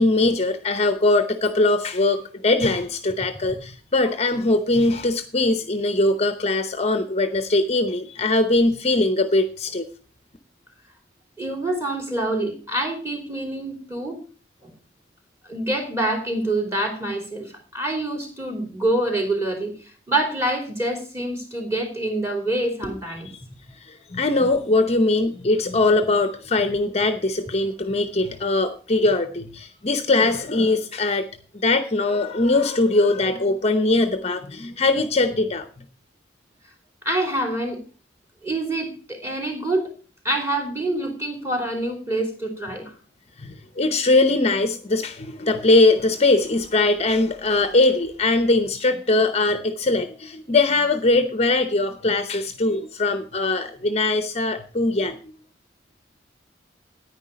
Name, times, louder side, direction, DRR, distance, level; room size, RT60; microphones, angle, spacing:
voice 1, 0.0-9.9 23.8-31.3 31.6-35.7 43.4-55.2, left 2 dB, 35° left, 9 dB, 0.8 m, -21 dB
voice 2, 11.4-14.2 14.6-14.7 15.4-19.7 20.1-23.3 37.0-37.8 38.4-39.9 40.2-42.9, right 1 dB, 15° right, 3 dB, 3.0 m, -26 dB
9.9 x 9.8 x 5.1 m, 0.37 s
head